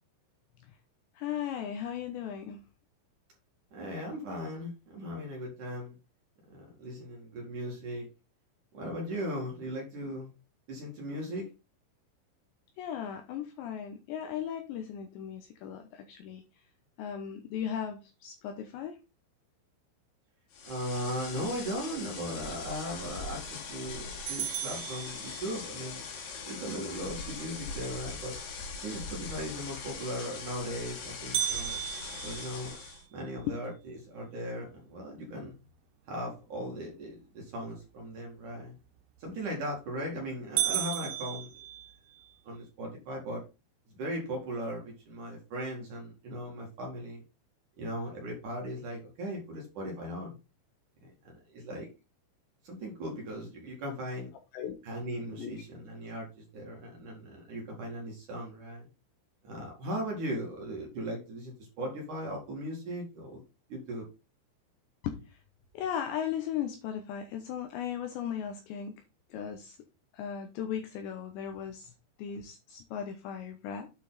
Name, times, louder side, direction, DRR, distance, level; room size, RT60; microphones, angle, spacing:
voice 1, 1.2-2.6 12.8-16.4 17.0-19.0 33.5-33.6 54.5-54.8 55.4-55.5 65.0-65.4 65.7-69.0 69.3-69.8 70.1-71.9 72.2-73.9, left 9 dB, 80° left, 6 dB, 2.7 m, -37 dB
voice 2, 3.7-6.0 6.5-8.1 8.7-10.3 10.7-11.5 20.6-26.0 26.5-28.4 28.8-31.8 32.2-32.8 33.1-35.5 36.1-38.8 39.2-41.5 42.4-43.5 43.9-47.2 47.8-50.3 51.0-51.9 52.6-54.3 54.8-58.9 59.4-63.4 63.7-64.1, equal, 50° right, 0 dB, 2.9 m, -38 dB
sound 1, 20.5-33.0, left 4 dB, 60° left, 3.9 m, -41 dB
sound 2, 24.3-25.8 31.3-33.5 34.0-34.1 34.6-34.7 35.4-35.7 39.3-39.7 40.1-40.2 40.6-42.3, right 11 dB, 80° right, 3.5 m, -35 dB
8.8 x 5.9 x 4.1 m, 0.28 s
omnidirectional pair, 5.9 m